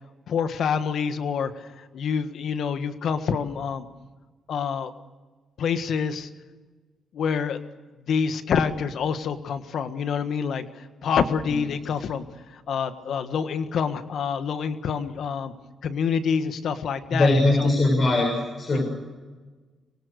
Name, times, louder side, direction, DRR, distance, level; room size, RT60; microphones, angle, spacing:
voice 1, 0.3-1.5 1.9-3.8 4.5-4.9 5.6-6.3 7.2-7.6 8.1-10.7 11.0-12.2 12.7-15.5 15.8-17.3, left 6 dB, 70° left, 10 dB, 1.7 m, -26 dB
voice 2, 17.1-18.8, left 2 dB, 45° left, 1 dB, 7.3 m, -21 dB
26.0 x 23.5 x 6.7 m, 1.3 s
cardioid pair, 70°, 0 cm